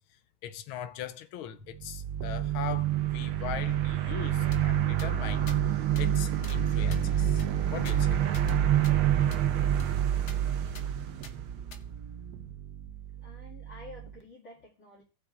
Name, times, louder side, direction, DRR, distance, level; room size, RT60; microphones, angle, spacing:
voice 1, 0.4-5.5 6.0-8.2, left 10 dB, 90° left, 1.5 m, -40 dB
sound 1, 1.7-12.0, right 11 dB, 85° right, 1.6 m, -27 dB
sound 2, 2.2-14.2, right 10 dB, 70° right, 0.9 m, -46 dB
sound 3, 4.5-4.6 5.0-5.1 5.5-5.6 6.0-6.1 6.4-6.6 6.9-8.6 8.8-8.9 9.3-9.4 9.8-9.9 10.3-10.4 10.7-10.9 11.2-11.3 11.7-11.8, left 5 dB, 50° left, 0.8 m, -49 dB
voice 2, 13.2-15.0, left 2 dB, 35° left, 2.3 m, -49 dB
18.0 x 6.0 x 2.5 m
omnidirectional pair, 2.2 m